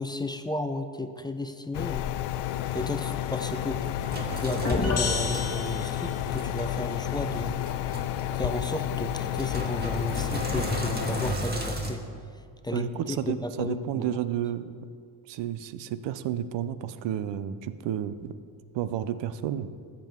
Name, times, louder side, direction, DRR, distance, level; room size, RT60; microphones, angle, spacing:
voice 1, 0.0-2.0 2.7-3.8 4.3-7.6 8.3-12.0 12.6-14.2, left 1 dB, 10° left, 7 dB, 0.6 m, -33 dB
sound 1, 1.7-11.3, left 12 dB, 70° left, 0.5 m, -31 dB
Sink (filling or washing), 3.1-11.9, right 2 dB, 20° right, 1.6 m, -36 dB
sound 2, 4.6-6.3, left 3 dB, 35° left, 1.3 m, -29 dB
voice 2, 12.7-14.7 15.3-18.3 18.7-19.7, right 10 dB, 80° right, 13 dB, 0.6 m, -31 dB
13.5 x 7.6 x 3.6 m, 2.2 s
supercardioid pair, 70°, 43 cm